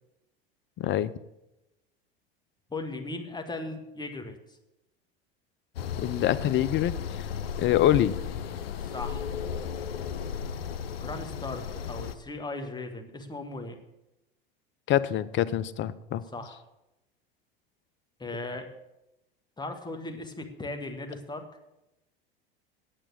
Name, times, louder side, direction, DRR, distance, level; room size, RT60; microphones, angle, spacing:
voice 1, 0.8-1.1 6.0-7.3 7.6-8.2 14.9-16.2, left 12 dB, 40° left, 17 dB, 0.7 m, -25 dB
voice 2, 2.7-4.4 8.8-9.3 11.0-13.8 16.3-16.6 18.2-18.7 19.6-21.4, left 2 dB, 15° left, 5 dB, 1.8 m, -37 dB
sound 1, 5.8-12.2, left 7 dB, 80° left, 0.8 m, -35 dB
8.9 x 8.7 x 7.0 m, 0.91 s
hypercardioid pair, 85°, 29 cm